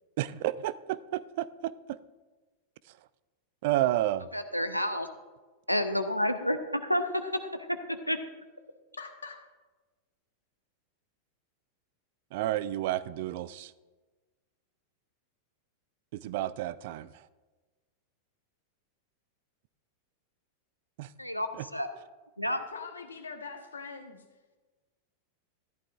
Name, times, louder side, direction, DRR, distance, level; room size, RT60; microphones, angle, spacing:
voice 1, 0.2-1.7 3.6-4.3 12.3-13.7 16.1-17.1 21.0-21.1 21.6-21.7, right 14 dB, 50° right, 18 dB, 0.3 m, -30 dB
voice 2, 4.3-5.1 5.7-8.2 21.2-21.5 21.7-21.9 22.4-22.6, equal, 90° left, 8 dB, 0.7 m, -30 dB
voice 3, 9.0-9.4 22.6-24.2, left 5 dB, 70° left, 6 dB, 1.1 m, -43 dB
14.0 x 11.5 x 2.4 m, 1.3 s
figure-of-eight pair, 90°, 0 cm